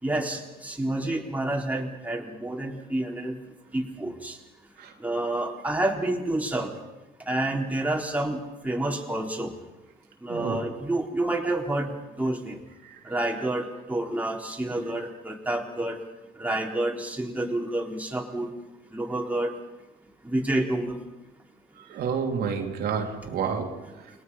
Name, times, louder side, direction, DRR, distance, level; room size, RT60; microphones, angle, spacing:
voice 1, 0.0-3.4 3.7-4.4 5.0-6.7 7.3-9.5 10.2-12.6 13.1-16.0 16.4-18.5 18.9-19.5 20.2-21.0, right 1 dB, 10° right, -1 dB, 3.9 m, -29 dB
voice 2, 10.3-10.7 12.8-13.0 21.8-24.2, right 6 dB, 70° right, 2 dB, 3.1 m, -30 dB
29.0 x 22.0 x 5.6 m, 1.0 s
cardioid pair, 110°, 17 cm